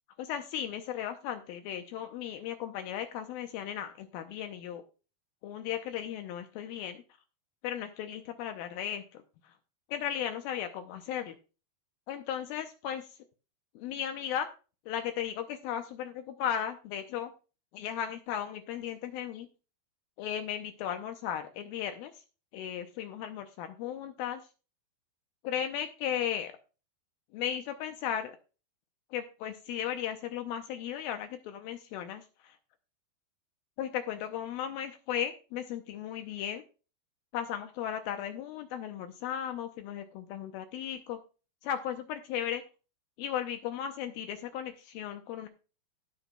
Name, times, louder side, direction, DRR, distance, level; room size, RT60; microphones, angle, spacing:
voice 1, 0.2-4.8 5.4-7.0 7.6-9.2 9.9-11.4 12.1-13.1 13.8-14.5 14.9-17.3 17.7-19.5 20.2-22.1 22.5-24.4 25.4-26.5 27.3-28.4 29.1-32.6 33.8-36.6 37.3-41.2 41.6-42.6 43.2-45.5, left 9 dB, 80° left, 7 dB, 2.4 m, -36 dB
18.0 x 6.8 x 2.3 m, 0.34 s
omnidirectional pair, 4.5 m